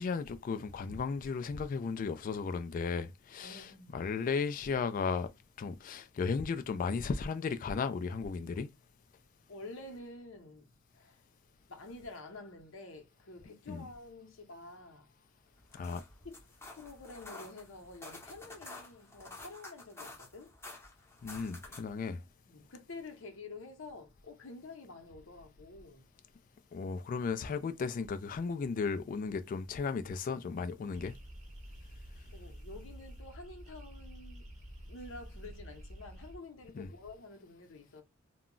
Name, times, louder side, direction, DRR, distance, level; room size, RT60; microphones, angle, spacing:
voice 1, 0.0-5.3 5.6-8.7 13.7-13.9 15.7-16.0 21.2-22.2 26.7-31.2 36.8-36.9, left 5 dB, 45° left, 0.3 m, -35 dB
voice 2, 3.4-4.0 9.5-11.2 11.7-15.1 16.2-16.4 16.7-20.5 22.5-26.1 32.3-34.5 34.9-38.0, left 2 dB, 75° left, 0.7 m, -49 dB
sound 1, 15.6-22.0, left 2 dB, 15° left, 0.7 m, -50 dB
sound 2, 30.9-36.4, equal, 35° right, 0.6 m, -49 dB
2.2 x 2.0 x 3.7 m
head